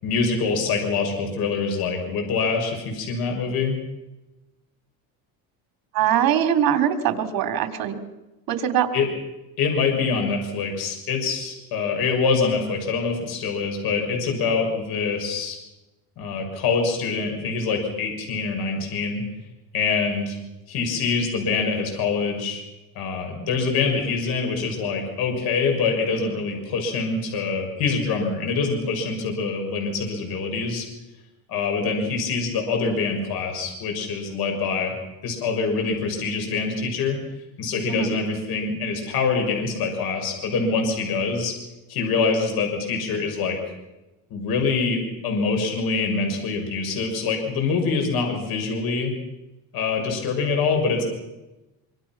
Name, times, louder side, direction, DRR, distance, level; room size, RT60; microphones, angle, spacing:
voice 1, 0.0-3.8 8.9-9.1 9.6-15.6 16.2-19.2 19.7-20.4 20.7-22.6 22.9-30.8 31.5-34.9 35.2-37.2 37.6-41.5 41.9-43.6 44.3-49.1 49.7-51.0, left 4 dB, 70° left, 3 dB, 6.4 m, -25 dB
voice 2, 5.9-8.0 8.5-8.9 37.9-38.1, right 10 dB, 65° right, 7 dB, 3.2 m, -22 dB
26.0 x 24.5 x 6.1 m, 1.0 s
cardioid pair, 135°, 38 cm